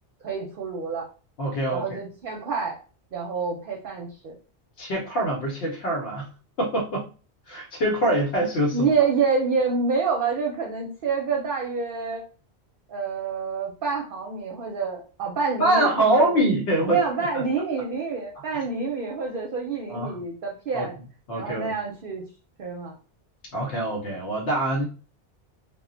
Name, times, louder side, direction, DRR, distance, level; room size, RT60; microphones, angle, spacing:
voice 1, 0.2-1.1 1.7-2.8 3.1-4.3 8.7-12.2 12.9-16.4 16.9-20.9 21.3-22.2 22.6-23.0, right 5 dB, 60° right, 0 dB, 0.7 m, -27 dB
voice 2, 1.4-2.0 4.8-6.3 6.6-7.1 7.5-8.9 15.6-17.0 17.3-17.4 19.9-20.2 20.7-20.9 21.3-21.7 23.5-24.8, right 1 dB, 75° left, -1 dB, 0.9 m, -24 dB
2.1 x 2.1 x 3.7 m, 0.37 s
omnidirectional pair, 1.1 m